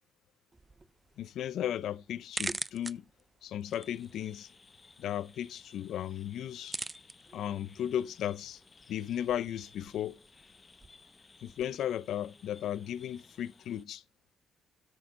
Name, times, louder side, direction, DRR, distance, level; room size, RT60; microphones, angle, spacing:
sound 1, 0.5-11.8, right 3 dB, 20° right, 0.4 m, -46 dB
voice 1, 1.2-3.0 3.4-4.5 5.0-6.8 7.3-8.6 8.9-10.2 11.4-14.0, left 10 dB, 75° left, 0.5 m, -35 dB
sound 2, 3.6-13.8, left 4 dB, 30° left, 0.8 m, -59 dB
13.0 x 6.4 x 3.7 m
cardioid pair, 90°, 0 cm